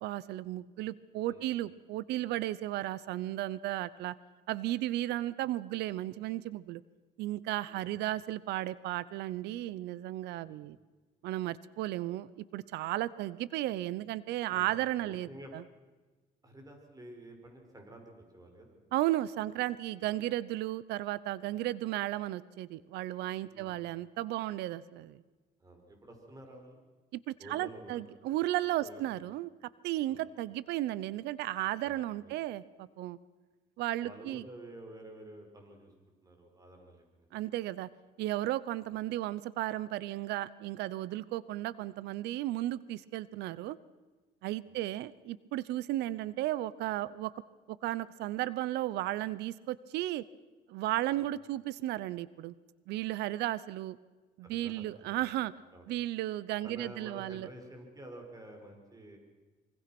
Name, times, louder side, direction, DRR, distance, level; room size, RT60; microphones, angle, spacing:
voice 1, 0.0-4.1 4.5-6.8 7.2-10.8 11.2-15.6 18.9-25.2 27.1-29.5 29.8-33.2 33.8-34.4 37.3-37.9 38.2-43.8 44.4-47.3 47.7-50.2 50.7-52.5 52.9-54.0 54.4-55.5 55.9-57.5, right 15 dB, 85° right, 19 dB, 0.8 m, -34 dB
voice 2, 14.5-15.5 16.4-18.8 19.4-19.5 20.0-20.1 23.5-23.8 25.6-26.8 27.4-28.0 28.8-29.0 30.1-30.3 31.8-32.3 34.0-35.9 36.2-37.4 44.6-44.8 51.1-51.2 54.4-55.3 55.7-55.9 56.6-59.2, right 1 dB, 20° right, 3 dB, 5.9 m, -50 dB
25.0 x 23.5 x 6.1 m, 1.3 s
cardioid pair, 110°, 17 cm